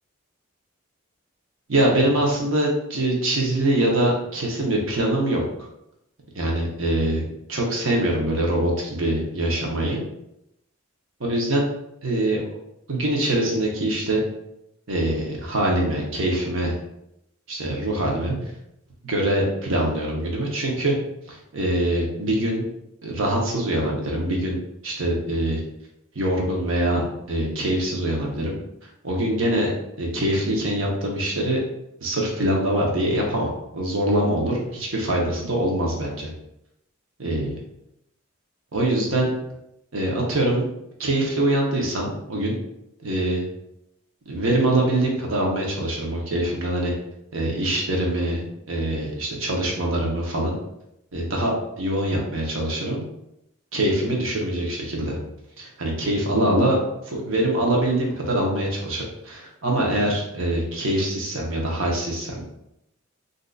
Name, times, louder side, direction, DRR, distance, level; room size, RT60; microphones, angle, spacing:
voice 1, 1.7-5.4 6.3-10.0 11.2-11.7 12.0-12.4 12.9-14.2 14.9-16.7 17.5-18.5 19.0-20.9 21.3-22.6 23.0-24.6 24.8-25.6 26.1-27.0 27.3-28.5 29.0-29.7 30.0-31.6 32.0-36.3 37.2-37.5 38.7-39.3 39.9-40.6 41.0-42.5 43.0-43.4 44.3-46.9 47.3-50.5 51.1-51.5 51.8-53.1 53.7-55.2 55.6-56.8 57.1-62.4, right 1 dB, 70° right, -1 dB, 0.9 m, -23 dB
3.8 x 2.6 x 2.4 m, 0.82 s
head